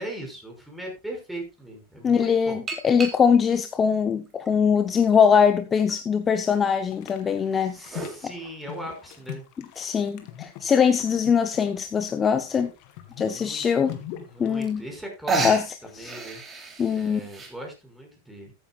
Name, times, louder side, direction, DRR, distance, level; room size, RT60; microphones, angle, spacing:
voice 1, 0.0-2.6 7.6-9.4 13.1-16.4 16.9-18.5, right 1 dB, 5° right, 1 dB, 6.0 m, -39 dB
sound 1, 0.9-1.0 2.7-3.6 4.3-5.3 5.9-6.0 7.2-8.2 9.9-10.0 10.5-10.6 10.7-10.8 11.2-11.5 12.5-12.6 13.1-13.2 14.3-14.4 14.6-15.0 15.3-17.5, right 3 dB, 20° right, 3.2 m, -32 dB
voice 2, 2.0-7.9 9.8-12.7 13.2-14.0 14.4-14.8 15.4-15.6 15.9-16.1 16.8-17.2, left 7 dB, 25° left, 8 dB, 0.8 m, -22 dB
sound 2, 6.9-14.8, left 12 dB, 55° left, 2.1 m, -42 dB
14.0 x 10.0 x 2.4 m, 0.26 s
hypercardioid pair, 105°, 0 cm